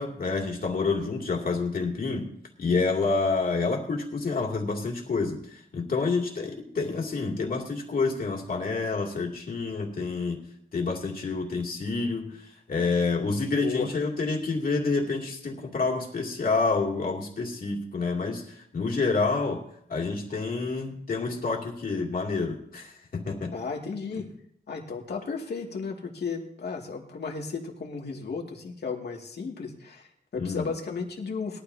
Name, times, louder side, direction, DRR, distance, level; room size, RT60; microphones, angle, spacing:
voice 1, 0.0-2.3 2.6-5.4 5.7-10.4 10.7-12.4 12.7-19.6 19.9-23.5 30.4-30.6, left 4 dB, 60° left, -1 dB, 2.8 m, -28 dB
voice 2, 13.6-13.9 23.5-24.3 24.7-31.6, left 5 dB, 90° left, 0 dB, 2.4 m, -34 dB
21.0 x 13.0 x 2.9 m, 0.70 s
wide cardioid pair, 145°, 17 cm